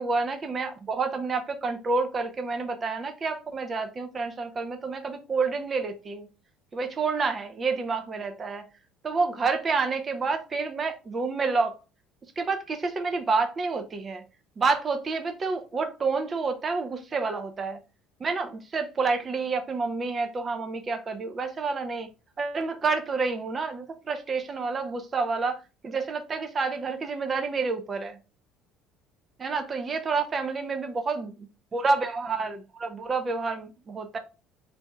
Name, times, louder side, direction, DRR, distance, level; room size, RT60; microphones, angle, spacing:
voice 1, 0.0-6.3 6.7-8.7 9.0-11.7 12.4-14.2 14.6-17.8 18.2-22.1 22.4-28.2 29.4-31.3 31.7-34.2, right 4 dB, 35° right, 0.6 m, -29 dB
3.4 x 2.7 x 3.3 m
hypercardioid pair, 65°, 0 cm